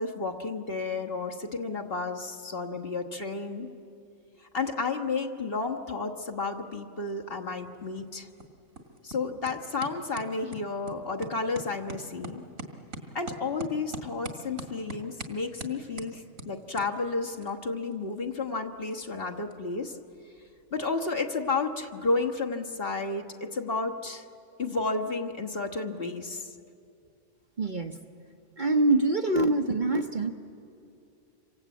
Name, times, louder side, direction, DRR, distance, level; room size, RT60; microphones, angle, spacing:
voice 1, 0.0-3.7 4.5-8.3 9.0-12.4 13.1-19.9 20.7-24.2 24.6-26.5, left 3 dB, 45° left, 3 dB, 1.6 m, -32 dB
sound 1, 7.1-22.9, right 2 dB, 70° right, 2.3 m, -46 dB
voice 2, 27.6-28.0 28.6-30.3, right 2 dB, 40° right, 4 dB, 1.0 m, -24 dB
27.5 x 25.0 x 8.3 m, 2.6 s
omnidirectional pair, 1.4 m